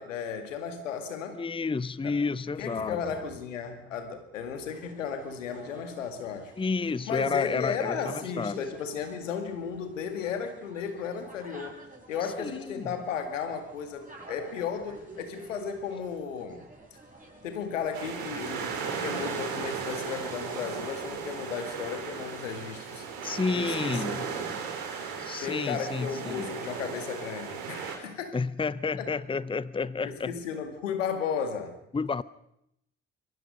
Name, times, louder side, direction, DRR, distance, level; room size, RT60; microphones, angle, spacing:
voice 1, 0.0-1.4 2.0-2.1 2.6-6.5 7.1-11.8 12.1-16.6 17.4-23.0 23.5-24.3 25.4-28.3 29.0-29.1 30.0-31.7, left 6 dB, 80° left, 8 dB, 2.1 m, -34 dB
voice 2, 1.3-3.0 6.6-8.6 12.4-12.9 23.2-24.3 25.2-26.5 28.3-30.4 31.9-32.2, left 4 dB, 15° left, 19 dB, 0.8 m, -30 dB
sound 1, 4.7-24.0, right 1 dB, 20° right, 7.2 m, -50 dB
sound 2, 17.9-28.0, right 6 dB, 65° right, 4.0 m, -36 dB
27.5 x 23.0 x 5.3 m, 0.77 s
figure-of-eight pair, 45°, 37 cm